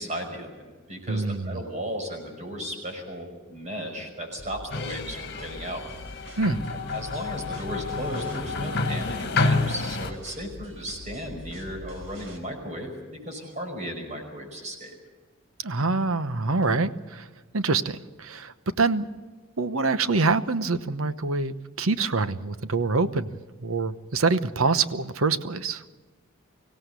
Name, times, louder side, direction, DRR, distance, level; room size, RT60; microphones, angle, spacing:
voice 1, 0.0-5.8 6.7-14.9, equal, 35° right, 3 dB, 5.5 m, -35 dB
voice 2, 1.1-1.6 6.4-6.6 15.6-17.3 17.5-19.0 19.6-25.8, right 3 dB, 85° right, 13 dB, 1.0 m, -25 dB
sound 1, 4.4-12.4, left 1 dB, 65° right, 4.1 m, -44 dB
sound 2, 4.7-10.1, left 3 dB, 55° left, 1.7 m, -29 dB
24.5 x 16.5 x 8.2 m, 1.3 s
head